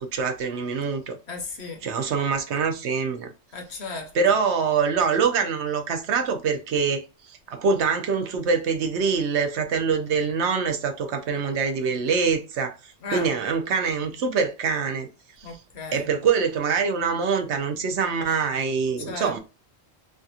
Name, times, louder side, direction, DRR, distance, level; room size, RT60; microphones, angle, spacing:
voice 1, 0.0-1.2 1.8-3.3 4.1-7.0 7.5-12.8 13.1-15.1 15.9-19.4, right 5 dB, 75° right, 1.0 m, -24 dB
voice 2, 1.3-1.8 3.5-4.1 13.0-13.3 15.4-16.1 19.0-19.4, left 3 dB, 70° left, 1.1 m, -35 dB
3.4 x 2.4 x 2.7 m
omnidirectional pair, 1.2 m